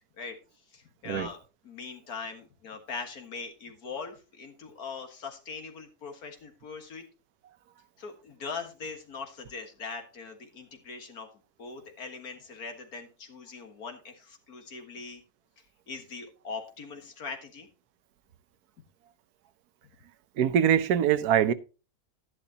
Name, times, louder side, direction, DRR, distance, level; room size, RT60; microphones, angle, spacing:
voice 1, 0.7-1.4 1.6-7.0 8.0-11.3 11.6-15.2 15.9-17.7, left 5 dB, 75° left, 2.1 m, -41 dB
voice 2, 20.4-21.5, right 9 dB, 85° right, 1.3 m, -23 dB
11.5 x 11.0 x 2.8 m
omnidirectional pair, 1.6 m